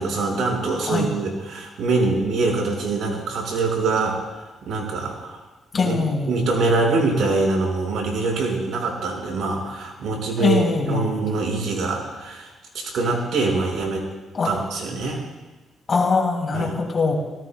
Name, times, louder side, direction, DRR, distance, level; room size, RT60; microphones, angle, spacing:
voice 1, 0.0-4.2 4.6-5.4 5.8-6.0 6.3-14.1 14.4-15.2 16.5-16.8, right 3 dB, 75° right, 0 dB, 5.3 m, -24 dB
voice 2, 5.7-6.3 10.4-11.1 14.3-14.6 15.9-17.1, left 4 dB, 40° left, 0 dB, 3.9 m, -22 dB
25.5 x 18.0 x 2.3 m, 1.2 s
cardioid pair, 90°, 0 cm